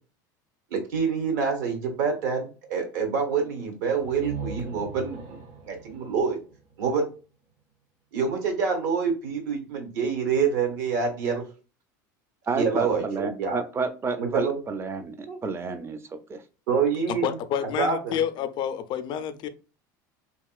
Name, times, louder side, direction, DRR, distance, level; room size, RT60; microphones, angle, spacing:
voice 1, 0.7-5.4 5.7-6.4 6.8-7.1 8.1-11.4 12.5-13.6 14.2-14.6 15.3-15.4 16.7-17.4 17.8-18.0, right 5 dB, 75° right, 3 dB, 1.0 m, -26 dB
sound 1, 4.0-7.7, right 4 dB, 55° right, 0.8 m, -40 dB
voice 2, 12.5-16.4, right 4 dB, 25° right, 11 dB, 0.4 m, -30 dB
voice 3, 17.1-19.5, left 9 dB, 50° left, 12 dB, 0.4 m, -29 dB
2.9 x 2.8 x 2.3 m, 0.34 s
supercardioid pair, 100°, 10 cm